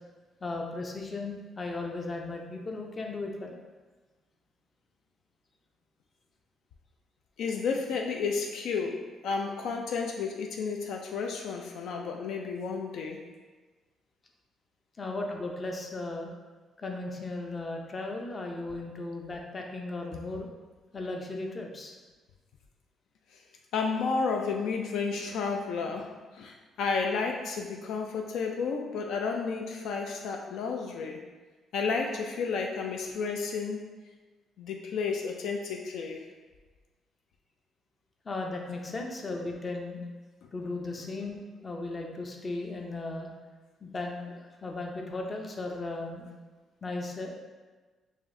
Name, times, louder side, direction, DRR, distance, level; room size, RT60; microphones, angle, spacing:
voice 1, 0.4-3.6 15.0-16.3 16.8-20.5 20.9-22.0 38.2-40.0 40.5-43.3 43.8-46.3 46.8-47.3, left 2 dB, 35° left, 1 dB, 0.6 m, -36 dB
voice 2, 7.4-13.2 23.7-31.2 31.7-33.9 34.6-36.2, left 5 dB, 80° left, 2 dB, 0.3 m, -32 dB
4.8 x 2.7 x 2.6 m, 1.3 s
cardioid pair, 90°, 0 cm